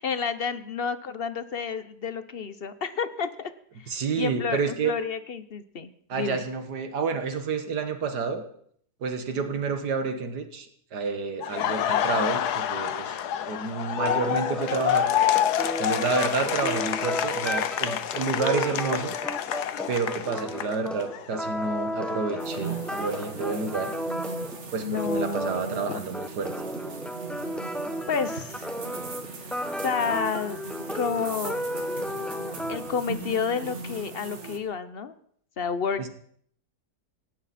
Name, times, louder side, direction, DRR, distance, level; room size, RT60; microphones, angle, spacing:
voice 1, 0.0-3.5 3.8-6.4 24.8-26.0 28.1-28.7 29.8-30.6 30.9-31.7 32.7-35.1 35.6-36.1, left 6 dB, 45° left, 13 dB, 0.9 m, -30 dB
voice 2, 3.9-5.0 6.1-8.4 9.0-13.2 13.5-15.1 15.8-19.1 19.9-23.9 24.7-26.5 36.0-36.1, right 4 dB, 80° right, 8 dB, 2.0 m, -29 dB
Laughter, 11.4-21.2 21.6-23.6, left 10 dB, 75° left, 1.4 m, -28 dB
sound 1, 14.0-33.1, equal, ahead, 0.9 m, -34 dB
sound 2, 22.4-34.6, right 5 dB, 45° right, 1.9 m, -39 dB
17.5 x 17.0 x 4.2 m, 0.63 s
omnidirectional pair, 1.8 m